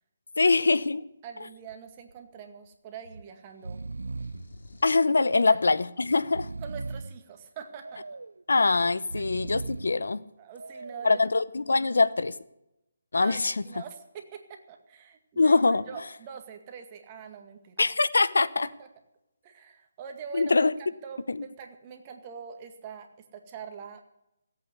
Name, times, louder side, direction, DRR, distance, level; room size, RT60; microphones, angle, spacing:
voice 1, 0.4-1.0 4.8-6.5 8.5-10.2 11.0-12.3 13.1-13.6 15.4-15.8 17.8-18.7 20.3-20.7 21.3-21.4, left 3 dB, 80° left, 0.9 m, -23 dB
voice 2, 1.2-3.8 5.5-5.6 6.6-8.2 10.4-11.2 13.1-13.4 13.7-17.9 18.8-18.9 19.4-20.6 21.0-24.0, right 7 dB, 25° right, 1.9 m, -44 dB
Breathing, 1.4-1.8 2.1-2.2 3.0-3.2 3.5-4.5 5.1-5.7 6.2-7.2 7.8-8.4 9.0-10.0 10.5-11.2, right 3 dB, 90° right, 0.4 m, -39 dB
sound 1, 4.2-5.1, left 2 dB, 65° left, 2.5 m, -49 dB
16.5 x 8.6 x 8.2 m
hypercardioid pair, 160°, 0 cm